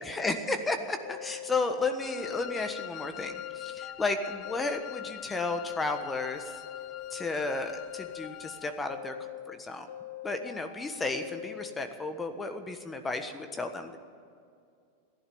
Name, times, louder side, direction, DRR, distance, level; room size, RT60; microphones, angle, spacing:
voice 1, 0.0-6.5 7.1-9.1 9.5-9.9 10.2-14.0, left 3 dB, 15° left, 7 dB, 1.3 m, -33 dB
sound 1, 1.0-2.9 3.2-5.1 5.5-7.3 7.7-9.5 9.9-11.8, left 12 dB, 80° left, 1.1 m, -43 dB
Wind instrument woodwind instrument, 2.0-8.7, left 12 dB, 40° left, 0.6 m, -44 dB
15.5 x 11.5 x 7.1 m, 2.4 s
hypercardioid pair, 110°, 0 cm